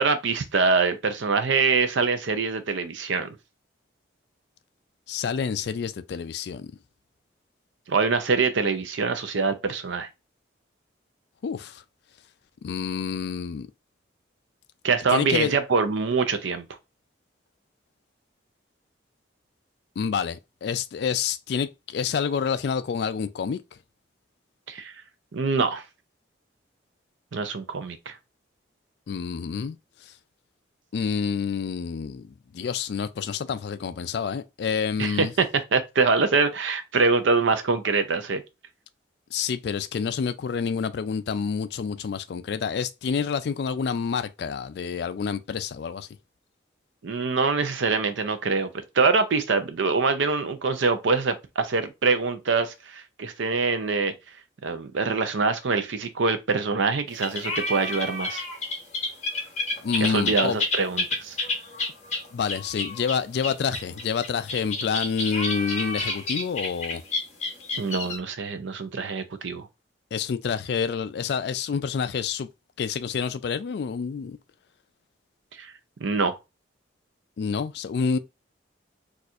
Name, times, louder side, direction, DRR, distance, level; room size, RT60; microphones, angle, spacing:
voice 1, 0.0-3.3 7.9-10.1 14.8-16.7 24.7-24.9 25.3-25.8 27.3-28.2 35.0-35.5 35.7-38.4 47.0-48.7 49.0-54.1 54.6-58.4 60.0-61.4 67.8-69.7 75.6-75.7 76.0-76.4, right 4 dB, 75° right, 0.5 m, -24 dB
voice 2, 5.1-6.7 11.4-11.8 12.6-13.7 15.1-15.5 20.0-23.6 29.1-30.1 30.9-35.3 39.3-46.1 59.8-60.6 62.3-67.0 70.1-72.5 72.8-74.4 77.4-78.2, left 6 dB, 60° left, 0.3 m, -28 dB
sound 1, 57.1-68.2, left 2 dB, 35° left, 1.0 m, -30 dB
4.2 x 2.4 x 2.5 m
head